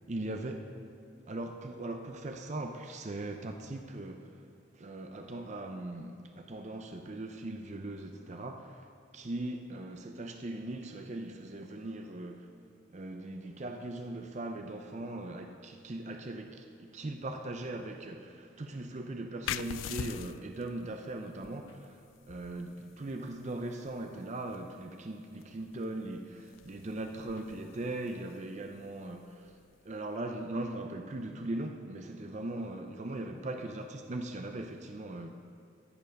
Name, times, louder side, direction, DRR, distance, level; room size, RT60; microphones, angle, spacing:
voice 1, 0.1-0.7 1.3-4.4 4.7-8.9 9.1-12.5 12.9-29.5 29.8-35.3, right 2 dB, 35° right, 5 dB, 0.6 m, -39 dB
sound 1, 19.4-30.7, left 10 dB, 85° left, 0.3 m, -46 dB
14.0 x 6.9 x 5.3 m, 2.4 s
head